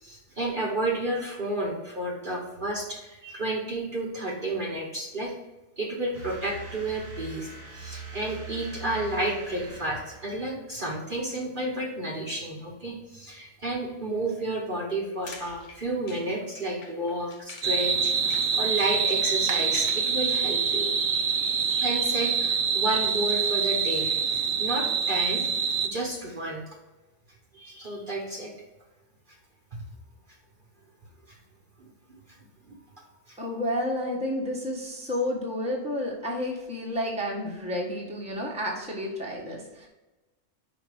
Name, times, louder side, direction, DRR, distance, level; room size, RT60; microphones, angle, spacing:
voice 1, 0.0-5.3 5.8-21.4 21.7-25.4 25.8-26.6 27.5-28.5 33.3-33.4, right 1 dB, 40° right, -2 dB, 1.2 m, -31 dB
sound 1, 6.1-10.8, right 5 dB, 85° right, 1.9 m, -42 dB
sound 2, 15.0-17.8 18.0-20.1, left 4 dB, 65° left, 1.2 m, -45 dB
sound 3, 17.6-25.9, right 6 dB, 60° right, 0.7 m, -25 dB
voice 2, 33.4-39.9, left 1 dB, 5° right, -3 dB, 1.2 m, -31 dB
5.1 x 5.0 x 4.9 m, 1.1 s
omnidirectional pair, 1.4 m